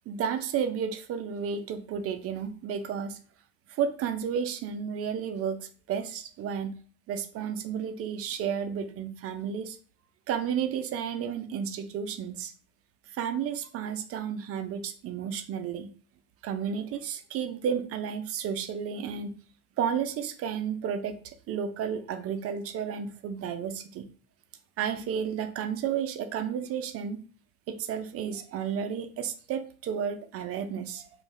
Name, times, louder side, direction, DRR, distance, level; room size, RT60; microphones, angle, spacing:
voice 1, 0.1-3.2 3.7-6.8 7.1-9.8 10.3-12.5 13.1-15.9 16.4-19.3 19.8-24.1 24.8-27.2 27.7-31.1, right 7 dB, 40° right, 8 dB, 0.5 m, -32 dB
2.6 x 2.3 x 3.1 m, 0.42 s
hypercardioid pair, 70°, 37 cm